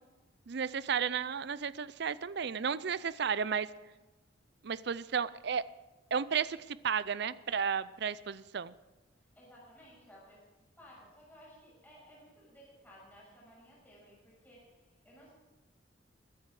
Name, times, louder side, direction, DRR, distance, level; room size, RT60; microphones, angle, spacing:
voice 1, 0.5-3.7 4.6-5.6 6.1-8.7, right 6 dB, 60° right, 17 dB, 0.5 m, -33 dB
voice 2, 9.2-10.4 10.8-15.3, equal, 10° left, -5 dB, 6.5 m, -57 dB
21.5 x 10.5 x 4.9 m, 1.1 s
head